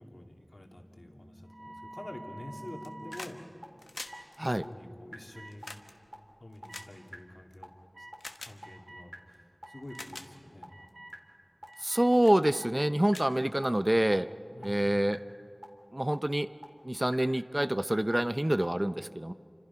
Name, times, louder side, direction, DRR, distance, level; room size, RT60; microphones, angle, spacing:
voice 1, 0.0-3.4 4.4-5.7 6.4-7.7 8.0-8.1 8.4-10.7 13.4-13.5 14.5-14.8, left 1 dB, 60° left, 2 dB, 2.5 m, -47 dB
sound 1, 0.7-3.1 3.6-3.7 4.1-4.2 4.6-4.7 5.1-5.2 5.6-5.7 6.1-6.2 6.6-6.7 7.1-7.2 7.6-7.7 8.1-8.2 8.6-8.7 9.1-9.2 9.6-9.7 10.1-10.2 10.6-10.7 11.1-11.2 11.6-11.7 12.1-12.2 12.6-12.7 13.1-13.2 13.6-13.7 14.1-14.2 14.6-14.7 15.1-15.2 15.6-15.7 16.1-16.2 16.6-16.7 17.1-17.2 17.6-17.7 18.1-18.2 18.6-18.7, equal, 10° right, 3.6 m, -47 dB
sound 2, 1.5-3.3 4.0-4.3 5.3-5.5 6.7-6.8 7.9-8.2 8.6-9.1 9.6-10.1 10.7-11.1 11.7-12.1 12.5-12.9, right 1 dB, 85° right, 1.7 m, -48 dB
sound 3, 2.7-3.4 3.7-7.6 8.2-8.6 9.3-9.4 9.8-10.3 10.9-11.1 11.7-11.9 12.2-12.4 12.8-12.9 13.1-14.0 15.2-15.3, left 2 dB, 85° left, 1.2 m, -46 dB
voice 2, 11.8-14.3 14.6-15.2 15.9-16.5 16.8-19.3, right 1 dB, 25° right, 13 dB, 0.5 m, -27 dB
29.0 x 26.0 x 5.7 m, 2.4 s
wide cardioid pair, 45°, 0 cm